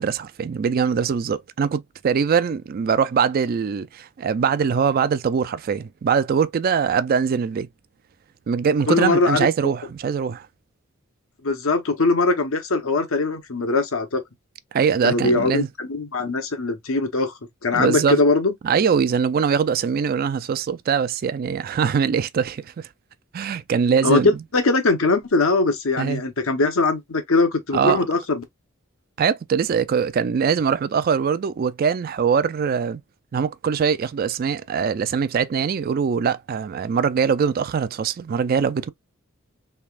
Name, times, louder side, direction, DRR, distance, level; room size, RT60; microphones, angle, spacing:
voice 1, 0.0-7.7 8.5-10.5 14.7-15.7 17.7-18.2 18.6-22.9 23.3-24.3 26.0-26.2 27.7-28.0 29.2-33.0 33.3-38.9, right 6 dB, 45° right, 0.3 m, -22 dB
voice 2, 8.9-9.5 11.4-14.2 15.0-17.3 17.6-18.5 24.0-28.4, left 3 dB, 80° left, 1.0 m, -21 dB
3.4 x 3.3 x 2.4 m
head